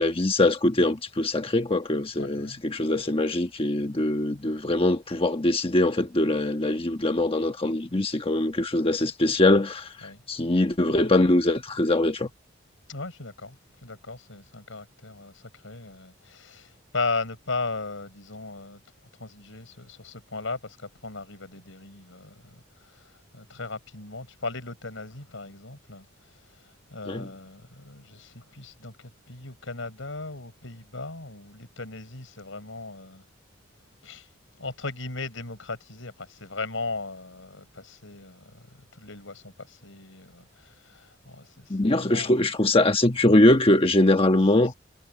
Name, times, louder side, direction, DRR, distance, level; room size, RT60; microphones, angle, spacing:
voice 1, 0.0-12.3 27.1-27.3 41.7-44.7, left 1 dB, 30° left, 1.2 m, -22 dB
voice 2, 2.2-2.6 10.0-10.2 12.9-13.6 13.8-18.8 19.2-26.0 26.3-33.2 34.0-34.3 34.6-42.4 44.5-44.6, left 3 dB, 85° left, 4.7 m, -37 dB
head